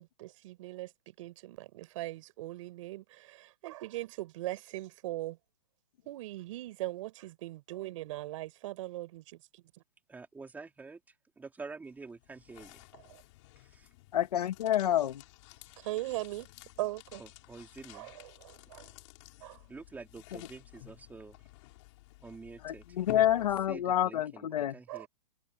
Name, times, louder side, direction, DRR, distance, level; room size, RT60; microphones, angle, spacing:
voice 1, 0.0-5.4 6.0-9.6 13.1-13.2 15.8-16.5 16.8-17.2 17.9-18.9 19.4-19.6 24.9-25.1, right 17 dB, 50° right, 6.0 m, -40 dB
voice 2, 10.1-12.9 13.6-13.9 15.6-15.8 17.2-18.1 19.7-21.5 22.2-25.1, right 4 dB, 10° right, 3.8 m, -48 dB
sound 1, 11.8-24.0, left 20 dB, 45° left, 5.4 m, -52 dB
voice 3, 14.1-15.2 22.6-24.7, left 11 dB, 70° left, 2.6 m, -28 dB
hypercardioid pair, 145°, 20 cm